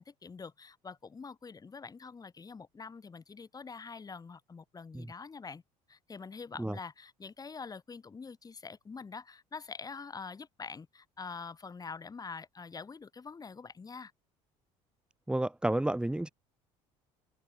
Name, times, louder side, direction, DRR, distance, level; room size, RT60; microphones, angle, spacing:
voice 1, 0.0-5.6 5.9-14.1, left 5 dB, 25° left, 5.3 m, -45 dB
voice 2, 15.3-16.3, right 1 dB, 5° right, 1.8 m, -31 dB
open air
supercardioid pair, 95°, 14 cm